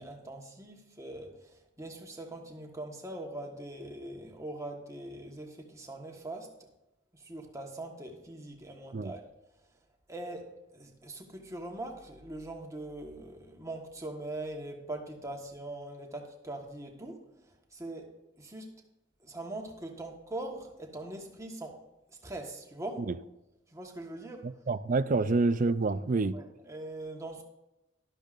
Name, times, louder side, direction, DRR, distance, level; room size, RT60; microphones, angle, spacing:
voice 1, 0.0-6.6 7.1-9.2 10.1-18.8 19.2-21.9 22.2-23.1 23.7-24.6 25.2-25.3 26.3-27.4, right 2 dB, 15° right, 1.3 m, -42 dB
voice 2, 24.4-26.4, right 3 dB, 40° right, 0.4 m, -28 dB
12.0 x 12.0 x 2.5 m
head